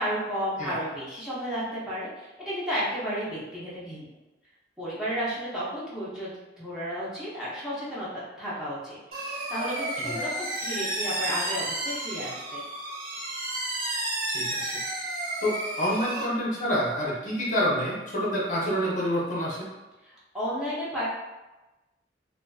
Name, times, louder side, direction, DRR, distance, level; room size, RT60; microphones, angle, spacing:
voice 1, 0.0-4.1 4.8-12.6 20.0-21.0, equal, 5° right, -10 dB, 0.6 m, -33 dB
sound 1, 9.1-16.2, right 1 dB, 55° right, 0.5 m, -32 dB
voice 2, 14.3-14.7 15.4-19.7, equal, 45° left, -5 dB, 0.6 m, -27 dB
2.4 x 2.3 x 2.2 m, 1.1 s
head